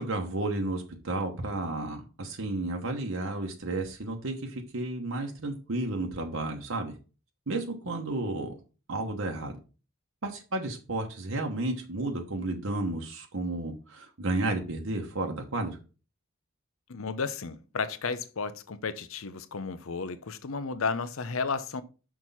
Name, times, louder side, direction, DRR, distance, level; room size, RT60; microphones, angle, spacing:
voice 1, 0.0-6.9 7.5-8.5 8.9-9.6 10.2-15.8, right 2 dB, 70° right, 1.1 m, -32 dB
voice 2, 16.9-21.8, left 4 dB, 70° left, 0.7 m, -33 dB
6.2 x 4.6 x 5.5 m
head